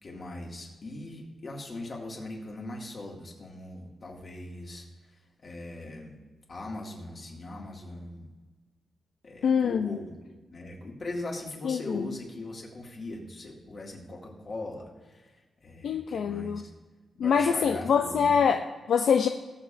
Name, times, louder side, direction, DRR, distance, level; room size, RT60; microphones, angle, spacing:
voice 1, 0.0-6.1 6.5-8.3 9.2-10.2 10.5-16.7 17.1-18.4, left 2 dB, 40° left, -1 dB, 2.2 m, -40 dB
voice 2, 9.4-9.9 11.6-12.0 15.8-16.6 17.2-19.3, left 6 dB, 70° left, 5 dB, 0.5 m, -24 dB
19.5 x 7.2 x 2.6 m, 1.3 s
wide cardioid pair, 135°, 0 cm